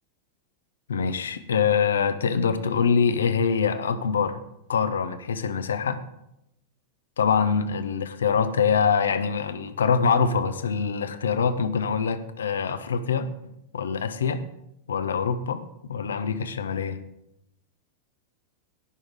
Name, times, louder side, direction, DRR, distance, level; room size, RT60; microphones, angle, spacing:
voice 1, 0.9-4.4 4.7-6.0 7.2-13.3 13.7-14.4 14.9-15.6 15.9-17.0, left 6 dB, 70° left, 12 dB, 0.8 m, -24 dB
18.0 x 6.3 x 3.7 m, 0.82 s
figure-of-eight pair, 90°, 0 cm